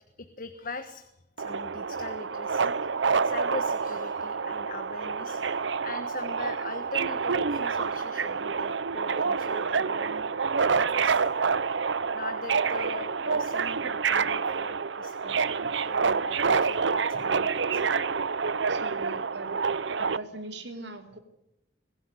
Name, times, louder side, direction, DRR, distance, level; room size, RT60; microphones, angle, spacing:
voice 1, 0.2-1.1 1.4-2.9 3.2-10.3 10.5-17.8, left 3 dB, 50° left, 8 dB, 1.4 m, -42 dB
Subway metro underground, 1.4-20.2, right 5 dB, 85° right, 0.7 m, -28 dB
voice 2, 18.7-19.5 20.0-21.2, right 2 dB, 65° right, 7 dB, 3.0 m, -40 dB
22.0 x 16.0 x 9.8 m, 0.82 s
head